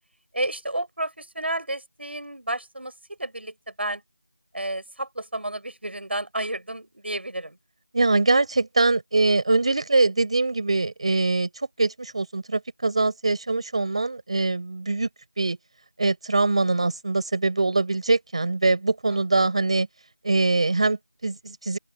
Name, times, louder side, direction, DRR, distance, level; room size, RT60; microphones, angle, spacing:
voice 1, 0.3-2.9 3.2-4.0 4.5-7.6 19.1-19.5, right 1 dB, 85° right, 6.5 m, -31 dB
voice 2, 7.9-11.5 11.8-15.1 15.4-15.6 16.0-19.9 20.2-21.8, right 3 dB, 35° right, 4.8 m, -23 dB
open air
figure-of-eight pair, 175°, 6 cm